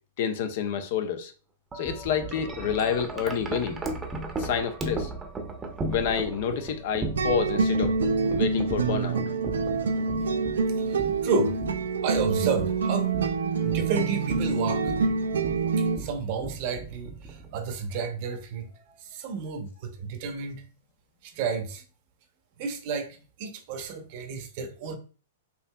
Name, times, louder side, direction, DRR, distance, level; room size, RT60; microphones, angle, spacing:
voice 1, 0.2-1.3 1.7-3.8 4.4-5.1 5.9-7.9 8.3-9.2, left 7 dB, 60° left, 0.6 m, -28 dB
Wind chime, 1.7-17.9, right 3 dB, 15° right, 0.7 m, -37 dB
sound 1, 7.2-16.0, right 4 dB, 85° right, 0.5 m, -26 dB
voice 2, 10.9-11.6 12.0-13.1 13.6-14.9 15.8-18.7 19.0-20.6 21.2-21.8 22.6-25.0, right 5 dB, 50° right, 0.7 m, -31 dB
4.6 x 2.7 x 2.3 m
hypercardioid pair, 120°, 0 cm